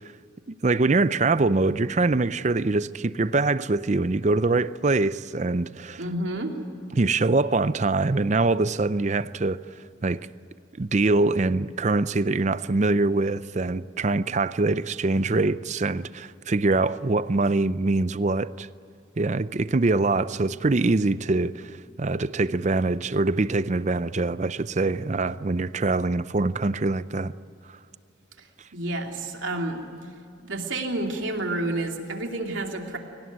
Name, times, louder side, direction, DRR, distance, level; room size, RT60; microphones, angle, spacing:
voice 1, 0.5-6.0 7.0-9.6 10.0-10.3 10.8-18.7 19.2-27.3, right 3 dB, 35° right, 0.5 m, -24 dB
voice 2, 6.0-6.6 28.4-28.5 28.7-29.8 30.4-33.0, right 2 dB, 75° right, 2.9 m, -29 dB
23.0 x 19.0 x 9.4 m
head